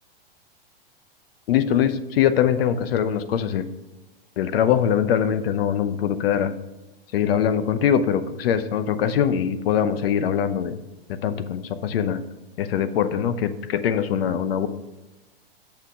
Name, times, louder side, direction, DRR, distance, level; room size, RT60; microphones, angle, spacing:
voice 1, 1.5-3.7 4.4-6.5 7.1-10.8 11.1-12.2 12.6-14.7, left 9 dB, 70° left, 12 dB, 0.8 m, -22 dB
6.8 x 5.8 x 4.9 m, 1.1 s
hypercardioid pair, 120°, 30 cm